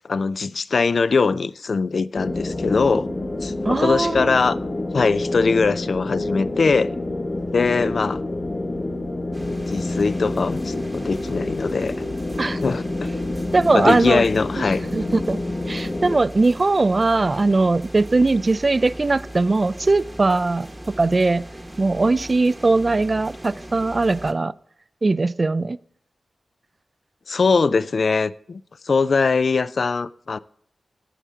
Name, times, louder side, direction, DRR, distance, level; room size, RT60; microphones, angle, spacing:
voice 1, 0.0-3.1 3.4-4.6 4.9-6.9 7.5-8.2 9.7-11.9 12.5-13.1 13.7-14.8 27.3-28.6 28.9-30.4, left 4 dB, 60° left, 0.4 m, -21 dB
sound 1, 2.2-16.2, left 2 dB, 35° left, 1.0 m, -28 dB
voice 2, 3.7-4.4 12.4-12.6 13.5-14.2 14.6-15.4 15.7-20.7 21.0-21.4 21.8-24.5 25.0-25.8, right 3 dB, 35° right, 0.3 m, -20 dB
sound 2, 9.3-24.3, right 1 dB, 10° right, 1.0 m, -39 dB
13.0 x 8.2 x 3.6 m
wide cardioid pair, 115°, 0 cm